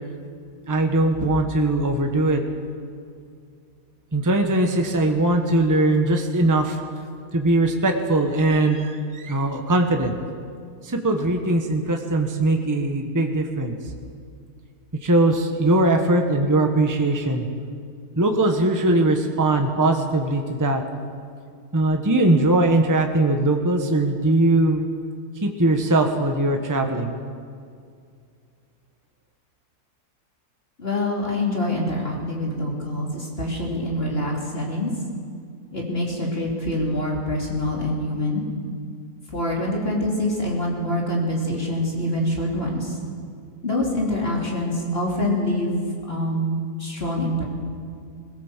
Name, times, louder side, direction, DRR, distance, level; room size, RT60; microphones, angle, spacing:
voice 1, 0.7-2.4 4.1-6.8 7.3-10.1 10.8-13.7 15.0-17.5 18.1-20.8 21.7-24.8 25.4-27.1, right 2 dB, 15° right, 4 dB, 1.2 m, -20 dB
voice 2, 30.8-34.9 35.7-38.5 39.3-43.0 43.6-47.4, left 1 dB, 35° left, -2 dB, 3.4 m, -25 dB
21.0 x 16.5 x 7.4 m, 2.2 s
omnidirectional pair, 1.7 m